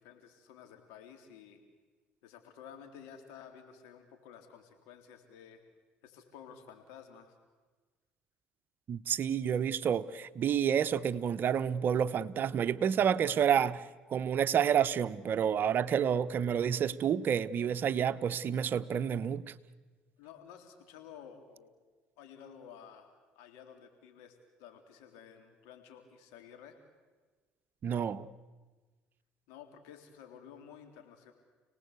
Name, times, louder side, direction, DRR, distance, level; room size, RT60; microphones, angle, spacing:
voice 1, 0.0-1.6 2.2-5.6 6.0-7.4 20.2-21.7 22.2-23.1 23.3-26.8 29.5-31.3, left 8 dB, 85° left, 3.7 m, -53 dB
voice 2, 8.9-13.8 14.1-19.5 27.8-28.3, right 8 dB, 50° right, 0.9 m, -29 dB
30.0 x 19.0 x 8.3 m
supercardioid pair, 80°, 4 cm